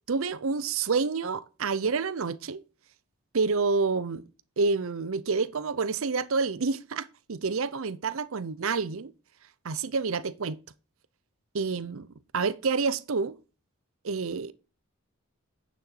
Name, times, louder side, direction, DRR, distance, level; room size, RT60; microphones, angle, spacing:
voice 1, 0.1-2.6 3.3-4.3 4.6-9.1 9.6-10.6 11.5-12.1 12.3-13.4 14.0-14.5, right 4 dB, 70° right, 0.6 m, -28 dB
9.7 x 6.4 x 4.4 m
head